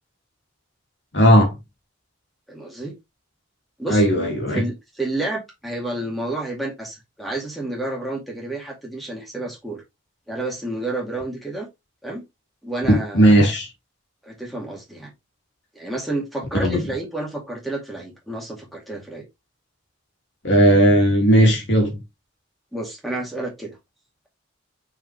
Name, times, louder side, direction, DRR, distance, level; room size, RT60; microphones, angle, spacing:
voice 1, 1.1-1.5 3.9-4.6 12.9-13.7 16.6-16.8 20.4-22.0, equal, 60° left, 2.5 m, -16 dB
voice 2, 2.5-3.0 3.8-4.0 4.5-9.8 10.3-11.7 12.0-12.2 12.6-13.5 14.2-15.1 15.7-19.3 22.7-23.8, right 2 dB, ahead, 2.2 m, -30 dB
5.9 x 4.9 x 3.3 m
head